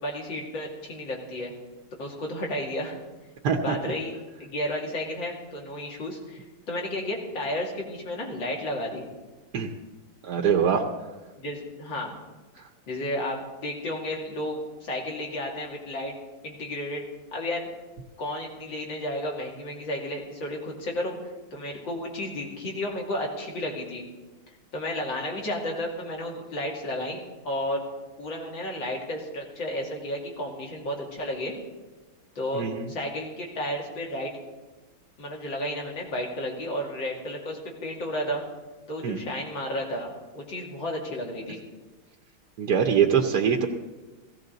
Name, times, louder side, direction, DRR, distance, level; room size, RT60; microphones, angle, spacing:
voice 1, 0.0-1.5 2.0-3.0 3.6-4.1 4.4-9.1 11.3-12.1 12.9-16.1 16.4-17.0 17.3-17.7 18.2-24.1 24.7-27.8 28.2-31.5 32.3-34.3 35.2-38.4 38.9-41.6, left 1 dB, 65° left, -1 dB, 3.2 m, -32 dB
voice 2, 3.4-3.8 9.5-9.7 10.2-10.9 32.5-32.9 39.0-39.2 42.6-43.7, right 7 dB, 60° right, 2 dB, 1.2 m, -23 dB
16.5 x 16.0 x 4.0 m, 1.2 s
omnidirectional pair, 2.3 m